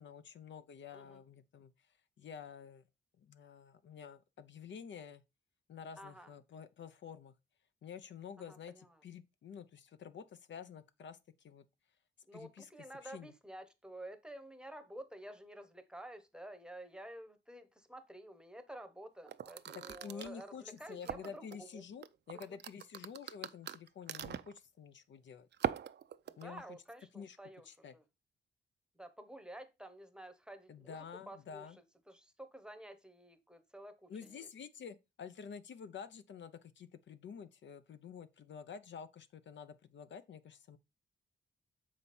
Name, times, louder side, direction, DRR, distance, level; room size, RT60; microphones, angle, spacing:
voice 1, 0.0-1.7 2.2-2.8 3.2-5.2 5.7-7.3 7.8-11.7 12.3-12.7 13.0-13.3 19.7-25.5 26.4-26.8 27.1-27.4 27.6-27.9 30.7-31.8 34.1-40.8, left 7 dB, 65° left, 0.7 m, -49 dB
voice 2, 6.0-6.3 8.5-9.0 12.3-21.8 22.3-22.6 26.3-28.0 28.9-31.0 31.3-34.5, right 1 dB, 5° right, 0.9 m, -51 dB
sound 1, 19.3-21.6 22.0-24.6 25.5-26.6, right 9 dB, 55° right, 0.5 m, -41 dB
7.0 x 5.1 x 4.2 m
wide cardioid pair, 130°, 21 cm